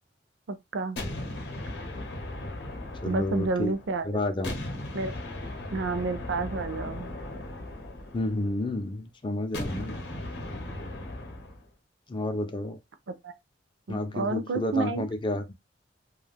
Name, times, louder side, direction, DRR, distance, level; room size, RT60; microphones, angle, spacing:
voice 1, 0.5-1.0 3.0-4.2 4.9-5.1 5.7-7.1 13.1-13.3 13.9-15.0, right 3 dB, 75° right, 0.5 m, -30 dB
sound 1, 1.0-4.0 4.4-8.7 9.5-11.6, left 1 dB, 65° left, 0.7 m, -37 dB
voice 2, 3.0-3.7 4.1-4.7 8.1-10.0 12.1-12.8 13.9-15.5, left 2 dB, 25° left, 0.4 m, -30 dB
2.4 x 2.2 x 3.3 m
head